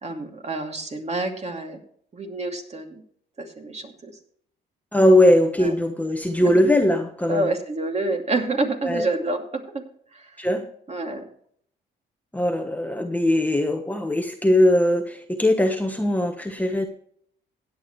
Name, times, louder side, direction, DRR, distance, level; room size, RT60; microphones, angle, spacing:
voice 1, 0.0-1.8 2.1-3.0 3.4-4.2 5.6-5.7 6.4-6.6 7.3-9.9 10.1-10.5 10.9-11.2, right 2 dB, 35° right, 3 dB, 2.6 m, -28 dB
voice 2, 4.9-7.5 8.8-9.1 10.4-10.7 12.3-16.9, left 1 dB, 10° left, 5 dB, 1.2 m, -20 dB
16.5 x 9.0 x 3.2 m, 0.63 s
cardioid pair, 90°, 20 cm